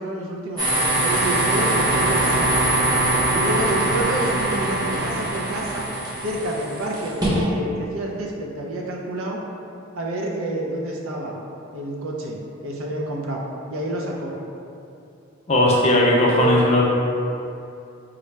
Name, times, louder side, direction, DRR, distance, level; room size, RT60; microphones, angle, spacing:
voice 1, 0.0-2.7 3.3-5.9 6.2-9.4 9.9-11.3 11.7-13.4 13.7-14.3 16.3-16.7, right 1 dB, 75° right, -1 dB, 0.5 m, -28 dB
sound 1, 0.6-7.4, right 1 dB, 20° right, 0.7 m, -22 dB
voice 2, 15.5-16.8, left 1 dB, 30° left, -3 dB, 0.4 m, -17 dB
3.7 x 2.2 x 3.1 m, 2.6 s
head